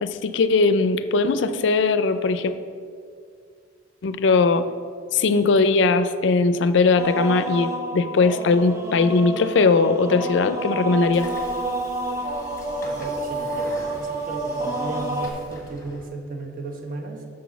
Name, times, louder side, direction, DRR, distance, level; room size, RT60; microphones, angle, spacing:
voice 1, 0.0-2.5 4.0-4.7 5.1-11.3, left 4 dB, 65° left, 11 dB, 0.4 m, -19 dB
sound 1, 7.0-15.3, right 2 dB, 15° right, 0.5 m, -29 dB
Train / Sliding door, 11.0-16.1, left 1 dB, 15° left, 1.1 m, -43 dB
voice 2, 12.8-17.3, right 2 dB, 45° right, 2 dB, 1.0 m, -35 dB
6.2 x 6.1 x 6.0 m, 2.2 s
head